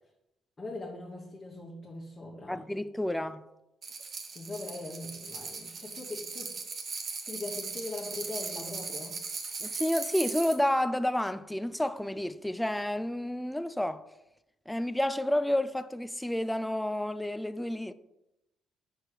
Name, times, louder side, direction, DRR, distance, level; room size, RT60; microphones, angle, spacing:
voice 1, 0.6-2.6 4.3-6.5 7.2-9.2, left 2 dB, 35° left, 1.1 m, -41 dB
voice 2, 2.5-3.4 9.6-14.0 14.7-17.9, left 1 dB, 5° left, 0.4 m, -30 dB
sound 1, 3.8-10.6, right 4 dB, 50° right, 1.1 m, -38 dB
4.8 x 4.6 x 4.7 m
supercardioid pair, 65°, 0 cm